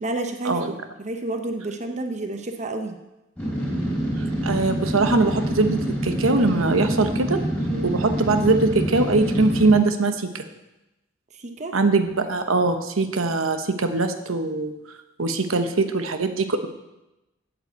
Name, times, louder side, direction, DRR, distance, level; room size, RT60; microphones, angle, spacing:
voice 1, 0.0-3.0 7.7-8.0 11.3-11.8, right 2 dB, 35° right, 6 dB, 0.8 m, -30 dB
sound 1, 3.4-9.8, equal, 5° left, 4.5 m, -26 dB
voice 2, 4.4-7.4 7.8-10.4 11.7-14.7 15.2-16.7, right 3 dB, 75° right, 7 dB, 1.0 m, -22 dB
8.8 x 8.0 x 8.0 m, 0.98 s
head